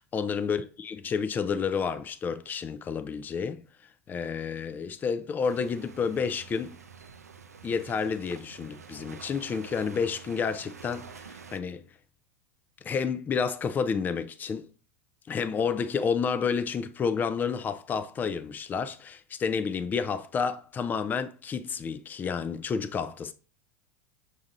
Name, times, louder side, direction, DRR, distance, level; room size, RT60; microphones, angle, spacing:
voice 1, 0.0-3.6 4.1-6.8 7.6-11.8 12.8-14.7 15.3-23.3, left 6 dB, 20° left, 0.3 m, -30 dB
sound 1, 5.4-11.6, right 6 dB, 90° right, 0.4 m, -48 dB
5.8 x 2.7 x 2.5 m
hypercardioid pair, 85°, 8 cm